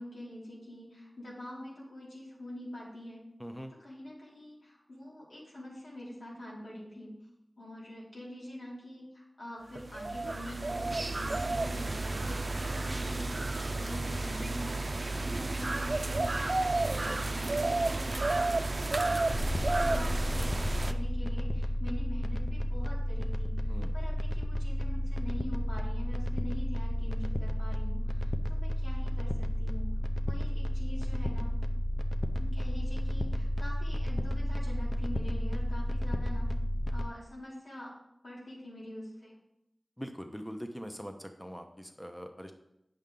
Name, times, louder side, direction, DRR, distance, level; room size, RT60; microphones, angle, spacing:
voice 1, 0.0-3.2 3.8-7.2 7.6-29.9 30.2-31.5 32.4-36.5 36.9-38.0 38.2-39.4, left 1 dB, 85° left, -6 dB, 3.0 m, -45 dB
voice 2, 3.4-3.7 23.7-23.9 40.0-42.5, equal, 5° left, 5 dB, 0.8 m, -42 dB
sound 1, 9.7-20.9, right 2 dB, 55° right, 0.5 m, -31 dB
sound 2, 19.3-37.1, left 1 dB, 35° left, 0.7 m, -31 dB
8.7 x 6.7 x 3.8 m, 0.83 s
wide cardioid pair, 50°, 0 cm